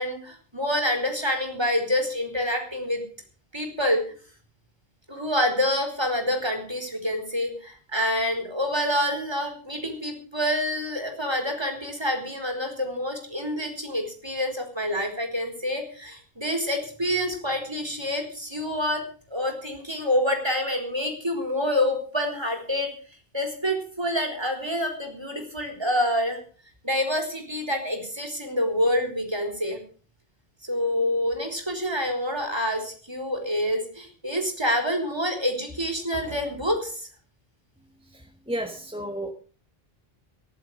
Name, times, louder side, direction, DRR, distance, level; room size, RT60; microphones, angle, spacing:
voice 1, 0.0-3.0 3.5-4.0 5.1-19.0 19.3-22.9 23.3-26.4 26.8-29.8 30.6-37.1, left 1 dB, 25° right, 3 dB, 4.0 m, -27 dB
voice 2, 38.1-39.3, right 1 dB, 5° right, 4 dB, 1.4 m, -33 dB
15.0 x 11.0 x 6.4 m, 0.42 s
omnidirectional pair, 1.0 m